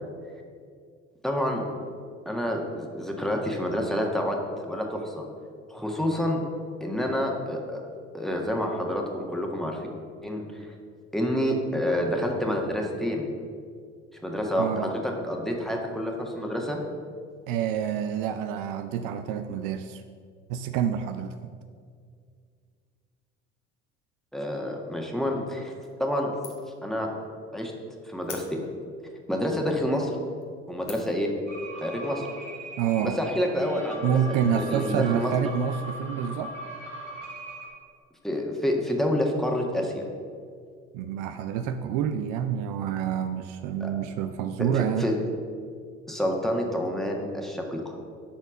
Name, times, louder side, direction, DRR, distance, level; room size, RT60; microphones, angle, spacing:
voice 1, 1.2-1.6 2.2-4.4 4.6-5.2 5.7-6.4 6.8-7.8 8.1-9.8 10.2-10.7 11.1-13.3 14.2-16.8 24.3-25.7 26.0-26.3 26.8-27.1 27.5-27.7 28.0-28.6 29.3-30.1 30.7-31.3 31.8-32.3 33.0-35.3 38.2-40.0 43.8-43.9 44.6-45.1 46.1-47.8, equal, ahead, 0 dB, 1.6 m, -28 dB
voice 2, 14.6-14.9 17.5-20.0 20.5-21.5 32.8-33.2 34.0-36.5 40.9-45.1, right 8 dB, 60° right, 9 dB, 0.5 m, -28 dB
sound 1, 25.8-26.2 26.4-26.8 27.2-27.3 28.2-28.9 29.6-29.7 30.2-30.4 30.9-31.3, left 6 dB, 70° left, 1.6 m, -43 dB
sound 2, 31.5-37.7, right 1 dB, 85° right, 1.5 m, -40 dB
11.5 x 4.2 x 6.4 m, 2.2 s
figure-of-eight pair, 55°, 35 cm